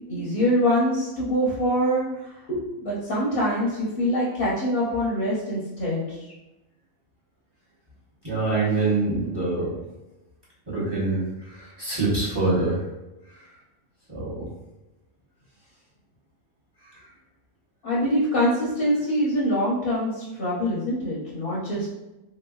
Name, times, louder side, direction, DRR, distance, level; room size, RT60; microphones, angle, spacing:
voice 1, 0.1-2.0 2.5-6.2 17.8-21.9, equal, 50° left, -6 dB, 0.9 m, -24 dB
voice 2, 8.2-9.7 10.7-12.8 13.3-13.4 14.1-14.5 16.8-17.0, right 3 dB, 20° right, -8 dB, 1.0 m, -25 dB
3.2 x 3.0 x 2.3 m, 0.99 s
omnidirectional pair, 1.4 m